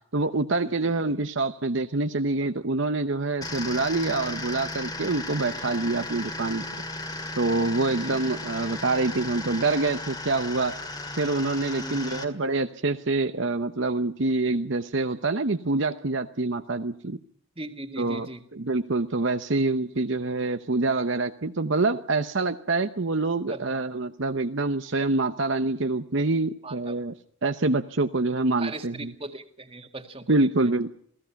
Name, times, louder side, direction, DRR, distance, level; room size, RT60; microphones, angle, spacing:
voice 1, 0.1-6.6 7.4-10.8 11.2-17.2 18.0-27.1 27.4-29.1 30.3-30.9, right 3 dB, 60° right, 8 dB, 0.9 m, -26 dB
sound 1, 3.4-12.2, left 2 dB, 20° left, 2.0 m, -35 dB
voice 2, 11.7-12.2 17.6-18.4 23.5-23.8 26.6-27.0 28.6-30.4, right 2 dB, 25° right, 7 dB, 2.0 m, -39 dB
28.0 x 17.5 x 5.9 m, 0.63 s
head